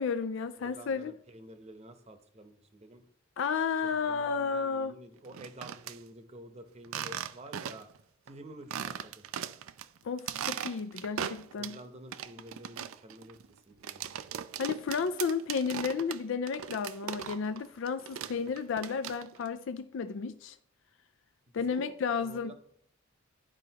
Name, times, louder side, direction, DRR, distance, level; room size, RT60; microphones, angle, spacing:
voice 1, 0.0-1.1 3.4-4.9 10.0-11.8 14.6-20.6 21.5-22.5, left 5 dB, 65° left, 0.4 m, -32 dB
voice 2, 0.6-3.0 3.8-7.9 8.2-9.2 11.6-14.2 18.2-18.6 21.5-22.5, right 1 dB, 30° right, 0.8 m, -50 dB
sound 1, 5.2-6.0 6.8-8.0 8.3-8.4 8.7-9.8 10.2-11.8 12.1-17.6 17.9-19.5, right 9 dB, 85° right, 0.4 m, -38 dB
11.0 x 4.9 x 2.9 m
head